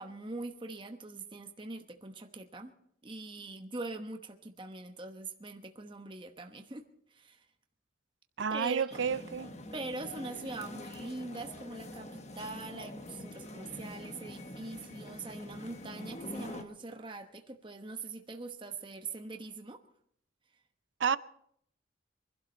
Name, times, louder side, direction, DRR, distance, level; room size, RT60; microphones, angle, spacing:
voice 1, 0.0-2.7 3.0-6.8 7.1-7.5 8.5-9.0 9.7-19.8, right 3 dB, 25° right, 1.0 m, -42 dB
voice 2, 8.4-9.5 21.0-21.2, right 6 dB, 80° right, 0.5 m, -30 dB
sound 1, 8.9-16.6, left 1 dB, 35° left, 1.2 m, -45 dB
24.0 x 12.0 x 4.3 m
head